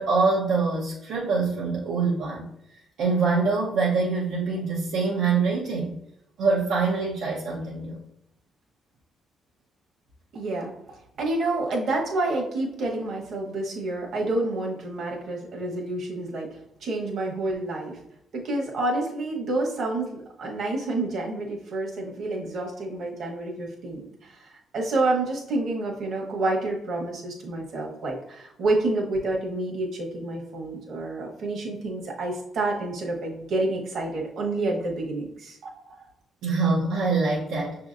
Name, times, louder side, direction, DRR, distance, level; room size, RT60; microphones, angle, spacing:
voice 1, 0.0-2.5 3.0-6.0 6.4-8.0 36.4-37.7, right 4 dB, 80° right, -6 dB, 0.7 m, -24 dB
voice 2, 10.3-16.5 16.8-18.0 18.3-36.0, right 2 dB, 65° right, -1 dB, 1.1 m, -29 dB
5.9 x 2.8 x 2.5 m, 0.77 s
cardioid pair, 90°, 0 cm